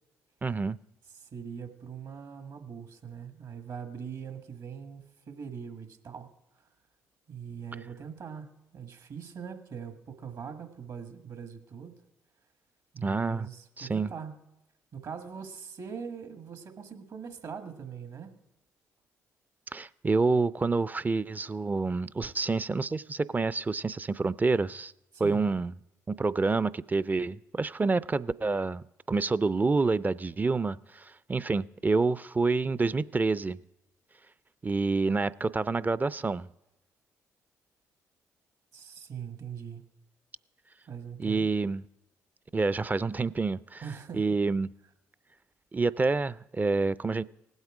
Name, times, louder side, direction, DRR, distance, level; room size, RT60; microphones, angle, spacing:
voice 1, 0.4-0.8 13.0-13.5 13.8-14.1 19.7-24.9 25.2-25.7 26.1-33.6 34.6-36.5 41.2-41.8 42.5-43.8 44.1-44.7 45.7-47.2, right 3 dB, 25° right, 19 dB, 0.4 m, -28 dB
voice 2, 1.2-6.7 7.3-12.0 12.9-14.3 14.9-18.3 25.1-25.5 38.7-39.8 40.9-41.5 43.8-44.4, right 7 dB, 60° right, 7 dB, 1.7 m, -42 dB
18.5 x 8.1 x 4.9 m, 0.89 s
hypercardioid pair, 55°, 7 cm